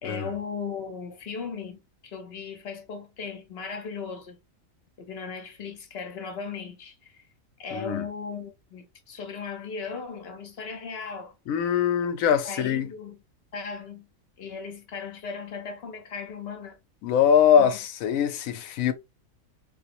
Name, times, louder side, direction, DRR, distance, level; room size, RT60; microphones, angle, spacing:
voice 1, 0.0-4.4 5.0-7.2 7.6-11.4 12.4-13.2 13.5-14.1 14.4-16.8 17.6-17.7, left 5 dB, 55° left, 0.9 m, -37 dB
voice 2, 7.7-8.0 11.5-12.9 17.0-18.9, left 8 dB, 80° left, 1.0 m, -22 dB
3.5 x 2.1 x 2.8 m
omnidirectional pair, 1.4 m